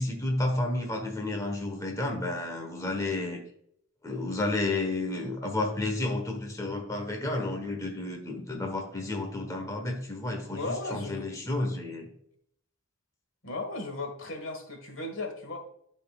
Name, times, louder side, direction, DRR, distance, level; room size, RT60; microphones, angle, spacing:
voice 1, 0.0-3.4 4.0-12.1, left 2 dB, 15° left, 2 dB, 1.2 m, -31 dB
voice 2, 10.5-11.3 13.4-15.6, left 2 dB, 75° left, 4 dB, 1.6 m, -36 dB
12.5 x 4.2 x 2.4 m, 0.70 s
head